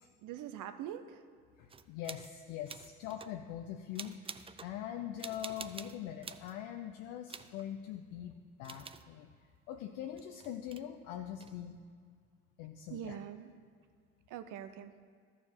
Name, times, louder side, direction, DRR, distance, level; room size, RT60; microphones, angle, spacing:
voice 1, 0.2-1.2 12.9-13.5 14.3-14.9, right 10 dB, 65° right, 10 dB, 0.7 m, -43 dB
voice 2, 1.6-9.3 9.7-11.8 12.6-13.2, left 10 dB, 80° left, 3 dB, 0.6 m, -43 dB
sound 1, 1.7-2.3 2.7-3.4 3.9-4.7 5.2-6.5 7.3-7.6 8.6-9.1 10.2-10.8 11.4-11.5, right 5 dB, 15° right, 0.4 m, -48 dB
13.0 x 4.7 x 5.8 m, 2.1 s
hypercardioid pair, 60°, 35 cm